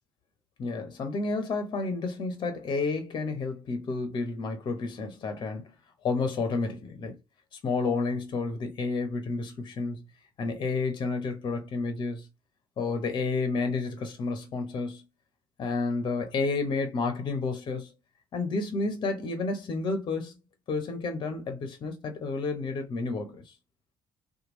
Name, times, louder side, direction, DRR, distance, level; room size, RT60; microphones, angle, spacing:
voice 1, 0.6-5.7 6.0-7.1 7.5-10.0 10.4-12.3 12.8-15.0 15.6-17.9 18.3-20.4 20.7-23.5, left 3 dB, 45° left, 0.7 m, -30 dB
2.9 x 2.2 x 2.9 m
figure-of-eight pair, 45°, 11 cm